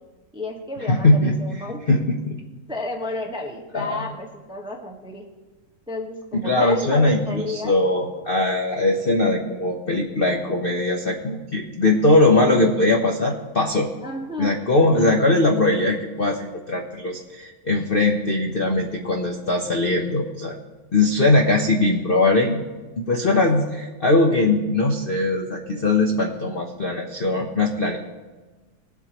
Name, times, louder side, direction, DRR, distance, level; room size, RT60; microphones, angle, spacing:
voice 1, 0.3-1.8 2.7-5.2 5.9-7.7 14.0-15.1, left 2 dB, 5° right, 1 dB, 0.8 m, -32 dB
voice 2, 0.9-1.3 1.9-2.4 3.7-4.0 6.4-13.9 14.4-20.6 20.9-22.6 23.0-28.0, left 2 dB, 50° left, 1 dB, 0.7 m, -20 dB
20.0 x 8.2 x 3.0 m, 1.2 s
omnidirectional pair, 2.2 m